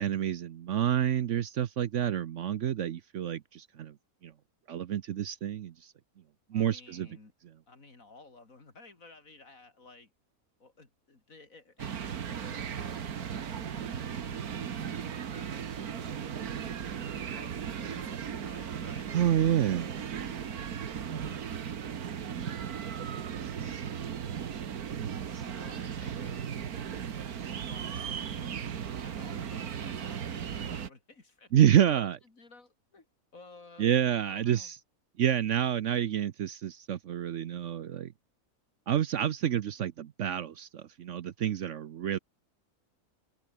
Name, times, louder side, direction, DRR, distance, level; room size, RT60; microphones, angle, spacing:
voice 1, 0.0-3.9 4.2-4.3 4.7-5.7 6.5-7.1 19.1-19.9 31.5-32.2 33.8-34.7 35.2-38.1 38.9-42.2, right 10 dB, 60° right, 1.0 m, -28 dB
voice 2, 6.5-7.3 7.7-10.1 10.6-16.3 17.0-22.9 23.5-24.0 25.3-26.5 27.5-28.6 29.0-33.1 33.3-34.7, left 3 dB, 65° left, 3.9 m, -54 dB
sound 1, 11.8-30.9, right 8 dB, 85° right, 1.8 m, -37 dB
open air
omnidirectional pair, 1.5 m